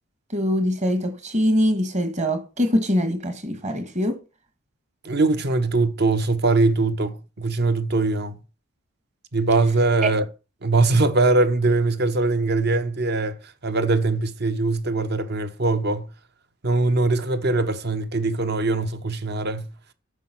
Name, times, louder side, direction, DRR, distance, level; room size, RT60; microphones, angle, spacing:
voice 1, 0.3-4.2 10.0-10.1, equal, 35° right, 1.7 m, -23 dB
voice 2, 5.0-8.4 9.3-10.3 10.6-16.1 16.6-19.7, right 3 dB, 50° right, 1.0 m, -22 dB
10.0 x 6.2 x 6.0 m
head